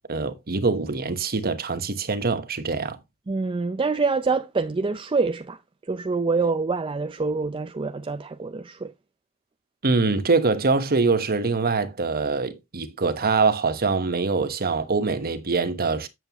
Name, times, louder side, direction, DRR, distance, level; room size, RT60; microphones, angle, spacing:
voice 1, 0.1-3.0 9.8-16.1, right 4 dB, 45° right, 1.2 m, -24 dB
voice 2, 3.3-8.9, right 4 dB, 25° right, 0.4 m, -26 dB
9.2 x 7.6 x 3.0 m
head